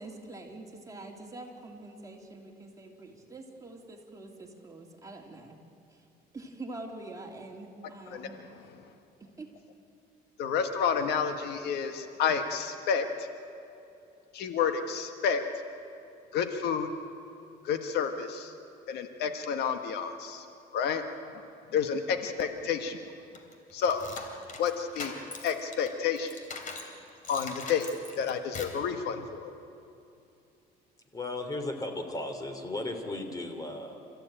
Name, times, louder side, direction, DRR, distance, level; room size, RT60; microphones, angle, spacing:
voice 1, 0.0-5.6 5.9-6.0 6.3-8.4 9.2-9.5, right 2 dB, 20° right, 0 dB, 3.2 m, -45 dB
voice 2, 10.4-13.3 14.3-15.4 16.3-16.9 17.6-18.5 18.9-20.4 20.7-21.0 21.3-21.4 21.7-23.0 23.7-24.0 24.6-25.1 25.4-26.4 27.3-27.9 28.2-29.5, left 7 dB, 75° left, 7 dB, 1.6 m, -30 dB
sound 1, 23.3-26.9 27.2-28.8, left 4 dB, 50° left, 3.3 m, -42 dB
voice 3, 31.1-34.0, left 2 dB, 20° left, 6 dB, 3.3 m, -35 dB
28.5 x 14.5 x 9.0 m, 2.6 s
cardioid pair, 110°, 17 cm